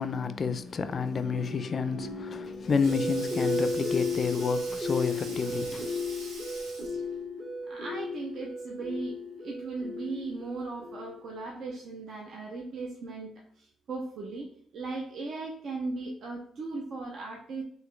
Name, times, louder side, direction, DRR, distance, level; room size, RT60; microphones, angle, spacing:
voice 1, 0.0-5.9, left 5 dB, 45° left, 0.3 m, -30 dB
sound 1, 1.3-11.4, left 2 dB, 45° right, 1.4 m, -34 dB
Sink (filling or washing), 2.1-7.2, right 2 dB, 85° right, 1.3 m, -45 dB
voice 2, 7.7-14.5 14.7-17.6, right 3 dB, 65° right, 0.5 m, -37 dB
3.9 x 2.6 x 3.1 m
cardioid pair, 90°, 0 cm